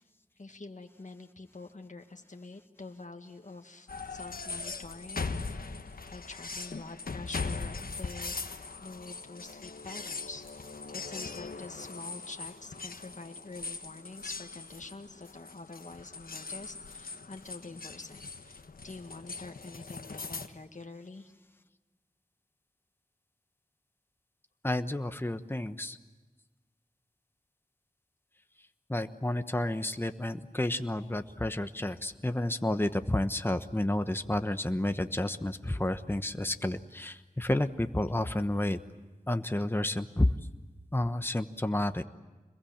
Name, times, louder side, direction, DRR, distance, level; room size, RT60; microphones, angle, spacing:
voice 1, 0.4-5.8 6.1-8.3 8.8-21.3, left 3 dB, 55° left, 4 dB, 1.8 m, -46 dB
sound 1, 3.9-20.5, left 4 dB, 85° left, 1.2 m, -40 dB
voice 2, 24.6-26.0 28.9-38.8 39.3-40.3 40.9-42.0, left 1 dB, 15° left, 8 dB, 1.1 m, -30 dB
27.0 x 22.0 x 8.7 m, 1.2 s
wide cardioid pair, 45°, 15 cm